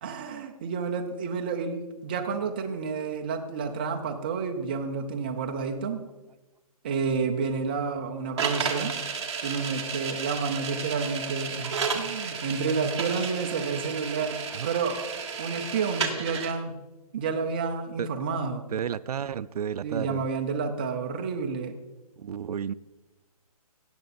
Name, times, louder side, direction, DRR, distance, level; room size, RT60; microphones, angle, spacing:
voice 1, 0.0-6.1 6.8-9.0 9.4-14.4 14.6-15.0 15.4-16.8 17.1-18.6 19.8-21.8, right 5 dB, 15° right, 4 dB, 0.5 m, -30 dB
sound 1, 8.4-16.5, right 5 dB, 45° right, 1.5 m, -32 dB
voice 2, 18.7-20.3 22.2-22.7, right 8 dB, 75° right, 18 dB, 0.4 m, -32 dB
17.5 x 6.5 x 4.1 m, 1.1 s
hypercardioid pair, 170°, 20 cm